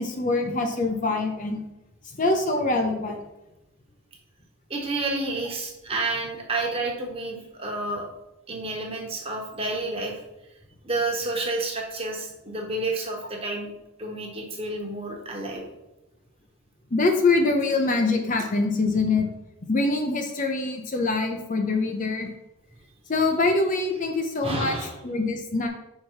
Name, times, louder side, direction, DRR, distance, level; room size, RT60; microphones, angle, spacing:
voice 1, 0.0-1.6 2.2-3.2 16.9-19.3 19.7-22.3 23.1-25.7, left 3 dB, 35° left, 4 dB, 0.6 m, -24 dB
voice 2, 4.7-8.1 8.5-10.2 10.8-13.7 14.0-15.6 24.4-24.9, right 2 dB, 25° right, 0 dB, 1.2 m, -30 dB
5.7 x 4.7 x 4.7 m, 0.94 s
head